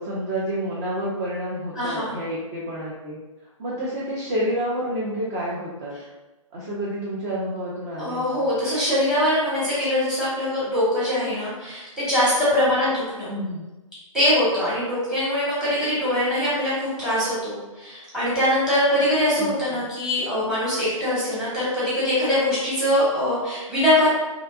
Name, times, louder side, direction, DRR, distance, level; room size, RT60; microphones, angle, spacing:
voice 1, 0.0-3.2 3.6-6.0 6.5-8.5 13.3-13.6 19.4-19.9, equal, 25° right, -6 dB, 0.4 m, -29 dB
voice 2, 1.7-2.1 8.0-13.3 14.1-24.1, left 1 dB, 5° right, -10 dB, 1.1 m, -22 dB
2.7 x 2.2 x 2.3 m, 1.1 s
figure-of-eight pair, 130°, 18 cm